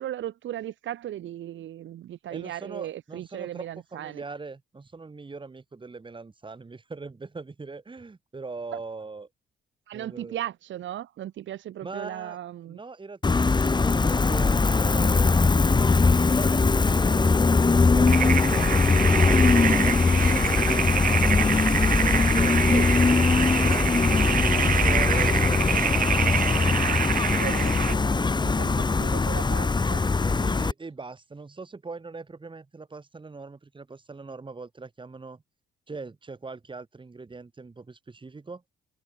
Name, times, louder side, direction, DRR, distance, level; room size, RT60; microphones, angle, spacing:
voice 1, 0.0-4.2 9.9-12.8 22.7-22.9 27.3-30.1, right 12 dB, 75° right, 1.9 m, -37 dB
voice 2, 2.3-9.3 9.9-10.4 11.8-12.4 12.6-17.4 17.7-21.7 22.3-26.4 28.3-28.9 30.2-35.4 35.9-38.6, right 4 dB, 25° right, 3.4 m, -41 dB
Gull seagull, 13.2-30.7, left 4 dB, 20° left, 1.2 m, -21 dB
sound 1, 18.1-27.9, right 9 dB, 45° right, 0.6 m, -27 dB
cardioid pair, 90°, 20 cm